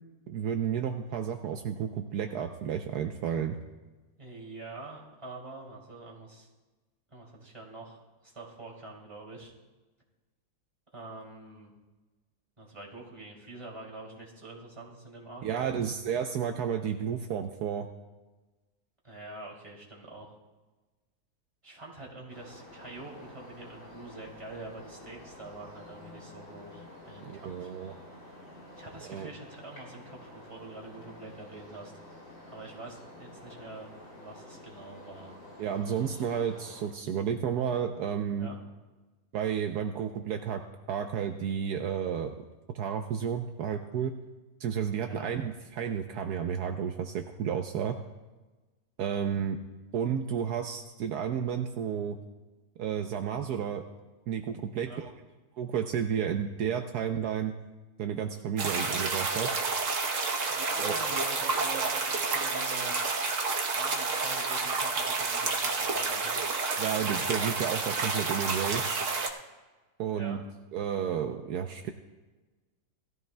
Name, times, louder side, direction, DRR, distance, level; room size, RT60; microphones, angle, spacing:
voice 1, 0.3-3.6 15.4-17.9 27.2-27.9 29.1-29.3 35.6-38.5 39.3-40.6 40.9-42.5 42.7-44.1 44.6-48.0 49.0-49.6 49.9-52.2 52.8-53.8 54.3-55.1 55.6-57.5 58.0-59.5 60.8-60.9 66.8-69.0 70.0-70.4 70.7-71.9, right 8 dB, 75° right, 5 dB, 1.2 m, -32 dB
voice 2, 4.2-6.5 7.1-9.5 10.9-11.7 12.6-15.7 19.0-20.4 21.6-27.7 28.8-31.9 32.5-33.9 34.2-35.4 38.3-38.6 45.0-45.3 54.8-55.0 60.5-63.0 63.7-66.5 70.0-70.4, right 2 dB, 20° right, -3 dB, 2.6 m, -45 dB
sound 1, 22.3-36.9, left 1 dB, 65° left, 4.1 m, -50 dB
sound 2, 58.6-69.3, right 4 dB, 55° right, 1.3 m, -30 dB
18.0 x 13.5 x 2.2 m, 1.2 s
omnidirectional pair, 1.7 m